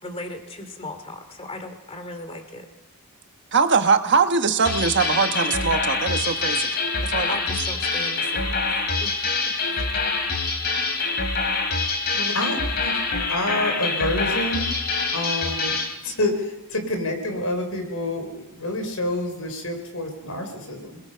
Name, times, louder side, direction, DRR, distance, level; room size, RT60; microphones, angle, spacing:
voice 1, 0.0-2.7 7.3-8.6 9.0-9.9, left 2 dB, 30° left, 7 dB, 2.6 m, -37 dB
voice 2, 3.5-6.7 7.0-7.4, right 5 dB, 55° right, 7 dB, 1.3 m, -21 dB
sound 1, 4.6-15.9, left 3 dB, 50° left, 2.9 m, -25 dB
voice 3, 12.1-13.0 13.3-14.6 15.1-15.8 16.0-21.0, left 1 dB, 80° left, 5 dB, 4.5 m, -28 dB
27.0 x 21.0 x 5.7 m, 1.2 s
head